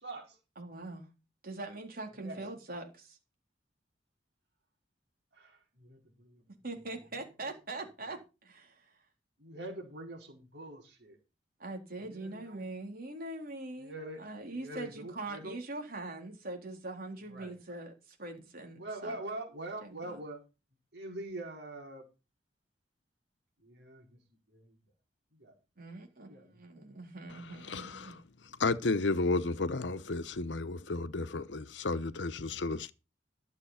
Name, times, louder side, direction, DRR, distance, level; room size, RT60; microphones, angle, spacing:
voice 1, 0.0-0.4 2.2-2.4 5.3-6.4 6.7-6.8 7.1-7.2 9.4-11.2 12.0-12.6 13.8-14.3 14.5-15.6 17.3-17.5 18.8-20.4 20.9-22.1 23.6-24.8 25.3-25.6 26.2-26.6, right 2 dB, 75° right, 5.0 m, -44 dB
voice 2, 0.6-1.1 1.4-3.2 6.6-9.0 11.6-19.2 19.8-20.2 25.8-28.2, right 2 dB, 55° right, 3.7 m, -42 dB
voice 3, 27.7-28.1 28.6-32.9, left 3 dB, 85° left, 0.9 m, -32 dB
12.5 x 7.4 x 5.7 m
head